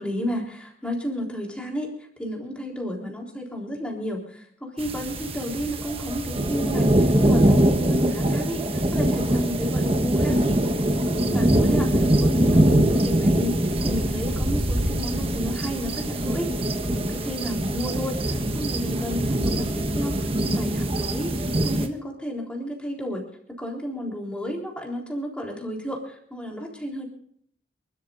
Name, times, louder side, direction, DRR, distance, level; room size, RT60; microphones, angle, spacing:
voice 1, 0.0-1.9 2.2-10.6 10.9-16.5 16.9-18.2 18.5-21.3 21.6-27.1, equal, 5° left, -1 dB, 3.7 m, -32 dB
sound 1, 4.8-21.9, right 1 dB, 30° right, 1.2 m, -23 dB
28.5 x 13.0 x 2.6 m, 0.65 s
head